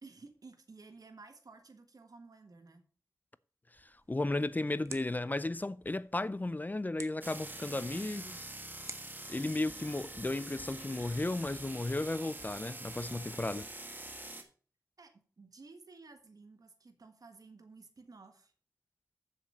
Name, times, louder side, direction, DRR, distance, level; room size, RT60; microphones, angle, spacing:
voice 1, 0.0-2.8 7.6-8.5 15.0-18.5, right 3 dB, 65° right, 1.5 m, -55 dB
sound 1, 3.7-13.8, right 3 dB, 50° right, 1.3 m, -56 dB
voice 2, 3.8-8.5 9.3-13.7, left 2 dB, 25° left, 0.5 m, -34 dB
sound 2, 7.2-14.4, right 2 dB, 30° right, 1.6 m, -45 dB
7.5 x 7.1 x 5.6 m
wide cardioid pair, 60°, 7 cm